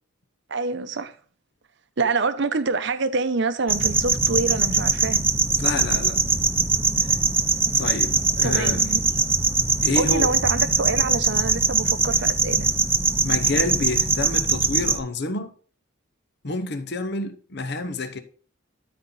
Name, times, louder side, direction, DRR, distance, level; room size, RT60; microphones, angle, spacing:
voice 1, 0.5-1.1 2.0-5.3 8.4-9.0 10.0-12.7, right 3 dB, 60° right, 0.7 m, -26 dB
sound 1, 3.7-15.0, right 4 dB, 10° right, 0.6 m, -22 dB
voice 2, 5.6-6.2 7.7-8.9 9.8-10.3 13.2-15.5 16.4-18.2, left 2 dB, 55° left, 0.9 m, -28 dB
13.0 x 4.3 x 3.8 m
head